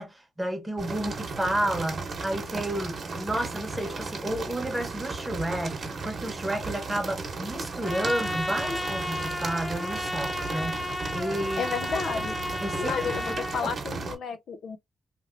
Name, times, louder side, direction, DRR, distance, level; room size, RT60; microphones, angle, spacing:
voice 1, 0.0-10.8 11.1-11.7 12.6-13.7, right 1 dB, 10° right, 1.0 m, -31 dB
sound 1, 0.8-14.2, right 4 dB, 45° right, 1.0 m, -35 dB
Trumpet, 7.8-13.6, left 1 dB, 10° left, 0.6 m, -33 dB
voice 2, 11.6-12.3 12.8-14.8, left 6 dB, 70° left, 0.5 m, -32 dB
2.9 x 2.8 x 2.5 m
cardioid pair, 105°, 0 cm